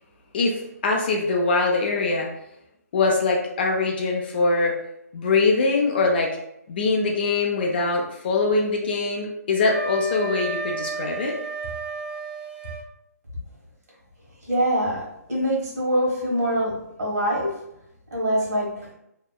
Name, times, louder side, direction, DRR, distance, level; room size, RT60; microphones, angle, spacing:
voice 1, 0.3-2.3 2.9-4.7 5.1-6.4 6.7-11.4, left 3 dB, 35° left, 0 dB, 0.3 m, -23 dB
Wind instrument woodwind instrument, 9.7-12.9, right 3 dB, 40° right, 0.4 m, -32 dB
voice 2, 14.4-17.5 18.1-18.9, equal, 65° right, -3 dB, 1.3 m, -24 dB
2.7 x 2.0 x 2.2 m, 0.80 s
hypercardioid pair, 155°, 9 cm